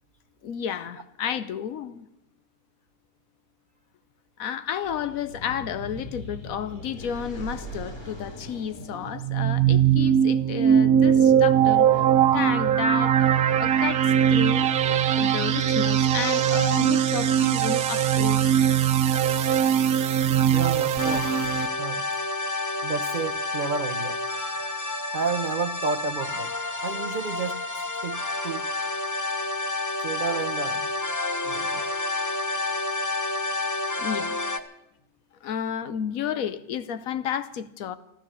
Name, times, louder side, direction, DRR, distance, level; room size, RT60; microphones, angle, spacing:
voice 1, 0.4-2.1 4.4-12.0 12.3-13.3 13.6-14.7 15.2-18.5 34.0-34.5 35.4-38.0, left 8 dB, 70° left, 1.1 m, -32 dB
sound 1, 4.8-14.3, equal, 50° left, 3.7 m, -42 dB
sound 2, 9.1-21.7, right 9 dB, 70° right, 1.2 m, -21 dB
voice 2, 20.2-21.3 21.8-22.0 22.8-24.2 25.1-26.5 26.8-27.6 28.0-28.7 30.0-30.9 31.4-31.9, right 5 dB, 55° right, 0.5 m, -31 dB
sound 3, 21.0-34.6, left 2 dB, 20° left, 0.4 m, -29 dB
13.5 x 13.0 x 7.4 m
omnidirectional pair, 1.6 m